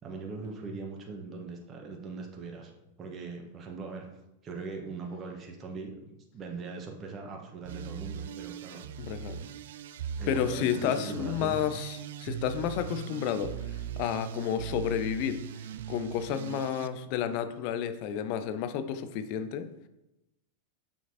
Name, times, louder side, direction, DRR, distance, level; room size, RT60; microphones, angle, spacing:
voice 1, 0.0-2.7 3.0-4.1 4.4-8.8 10.2-11.6, right 4 dB, 25° right, 1 dB, 1.2 m, -40 dB
sound 1, 7.6-16.9, right 9 dB, 55° right, 0.3 m, -40 dB
voice 2, 9.0-9.4 10.3-15.4 15.9-19.7, left 9 dB, 45° left, 10 dB, 0.6 m, -31 dB
7.2 x 5.9 x 2.8 m, 0.91 s
figure-of-eight pair, 90°, 0 cm